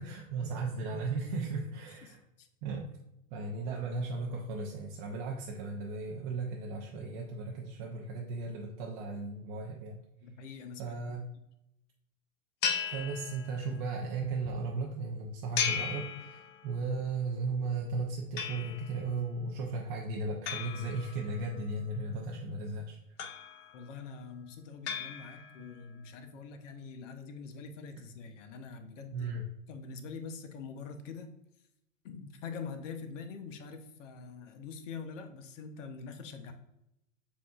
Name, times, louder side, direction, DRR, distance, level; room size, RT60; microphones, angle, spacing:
voice 1, 0.0-2.2 2.6-2.9 3.3-10.0 10.8-11.3 12.9-23.0 25.6-25.7 29.1-29.4, right 3 dB, 40° right, -1 dB, 0.6 m, -36 dB
voice 2, 2.0-2.5 10.2-11.0 23.7-29.3 29.7-31.3 32.0-36.5, left 5 dB, 55° left, 6 dB, 0.8 m, -44 dB
sound 1, 12.6-13.8 15.6-16.8 18.4-19.1 20.5-21.6 23.2-23.9 24.9-25.7, left 7 dB, 25° left, 0.4 m, -36 dB
7.1 x 2.5 x 2.4 m, 0.85 s
hypercardioid pair, 115°, 43 cm